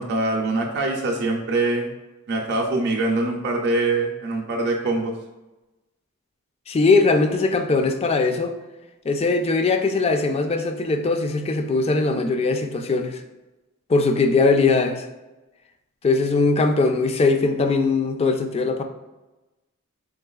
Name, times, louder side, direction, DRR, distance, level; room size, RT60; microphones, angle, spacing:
voice 1, 0.0-1.9 2.3-5.1, right 2 dB, 50° right, 0 dB, 0.5 m, -23 dB
voice 2, 6.7-8.6 9.0-13.2 13.9-15.1 16.0-18.8, left 3 dB, 30° left, 6 dB, 0.3 m, -20 dB
3.9 x 3.8 x 2.3 m, 1.1 s
head